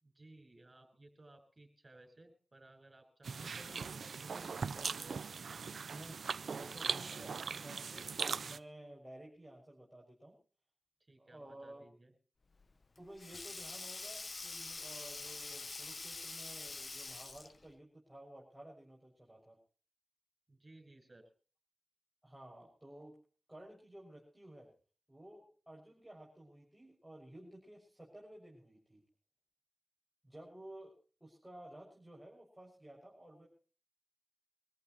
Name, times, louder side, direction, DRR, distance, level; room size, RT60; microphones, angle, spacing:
voice 1, 0.0-4.9 11.0-12.1 20.5-21.2, right 2 dB, 35° right, 6 dB, 7.6 m, -60 dB
sound 1, 3.2-8.6, right 5 dB, 80° right, 0.6 m, -40 dB
voice 2, 3.4-3.8 4.3-4.5 5.9-6.2 6.5-10.3 11.2-11.9 13.0-19.6 22.2-23.1 23.5-24.7 25.1-29.0 30.2-30.9 31.2-33.5, right 1 dB, 10° right, -3 dB, 6.4 m, -54 dB
Sink (filling or washing), 12.5-17.7, left 3 dB, 45° left, 0.9 m, -45 dB
25.0 x 14.5 x 3.1 m, 0.40 s
cardioid pair, 65°, 0 cm